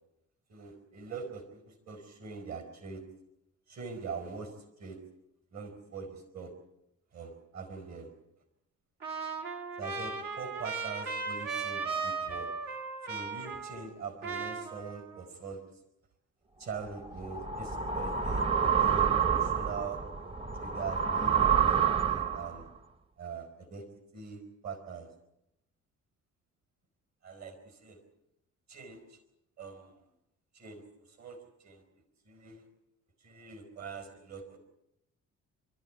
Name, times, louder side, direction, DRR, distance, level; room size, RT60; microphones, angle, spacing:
voice 1, 0.5-3.0 3.7-5.0 5.5-6.5 7.1-8.1 9.8-12.8 13.0-15.8 16.6-20.0 20.5-22.7 23.2-23.9 24.1-25.1 27.2-28.0 28.7-29.2 29.6-30.1 30.5-31.8 32.2-32.7 33.2-34.6, right 5 dB, 60° right, 7 dB, 4.5 m, -43 dB
Trumpet, 9.0-14.0 14.2-15.2, right 4 dB, 85° right, 3.1 m, -37 dB
sound 1, 16.8-22.6, right 7 dB, 20° right, 0.8 m, -28 dB
28.0 x 13.0 x 9.6 m, 0.85 s
cardioid pair, 90°, 30 cm